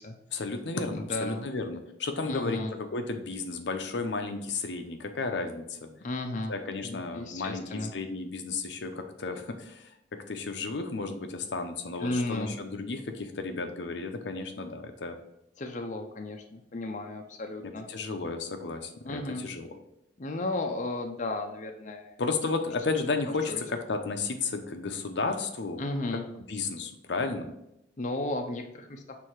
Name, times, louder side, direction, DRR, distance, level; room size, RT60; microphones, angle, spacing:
voice 1, 0.3-5.9 6.5-9.9 10.3-15.2 17.9-19.8 22.2-25.8 26.5-27.5, left 3 dB, 80° left, 6 dB, 0.7 m, -33 dB
voice 2, 0.9-1.5 2.2-2.7 6.0-6.5 6.8-7.9 12.0-12.6 15.6-17.9 19.1-19.4 20.2-22.2 23.5-23.6 25.8-26.3 28.0-29.2, left 2 dB, 45° left, 4 dB, 0.6 m, -34 dB
6.5 x 3.4 x 4.7 m, 0.82 s
head